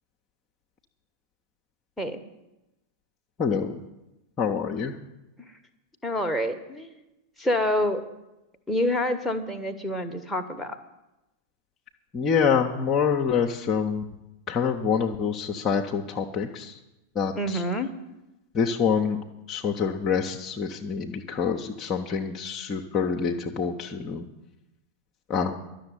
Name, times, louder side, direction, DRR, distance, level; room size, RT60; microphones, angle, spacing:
voice 1, 3.4-3.8 4.4-4.9 12.1-14.0 14.5-16.8 17.1-17.6 18.5-19.2 19.5-24.3 25.3-25.5, left 6 dB, 30° left, 1 dB, 0.9 m, -26 dB
voice 2, 6.0-7.0 7.4-8.0 8.7-10.8 17.3-17.9, left 1 dB, 5° left, 3 dB, 1.3 m, -27 dB
11.5 x 7.0 x 9.5 m, 0.96 s
figure-of-eight pair, 90°, 0 cm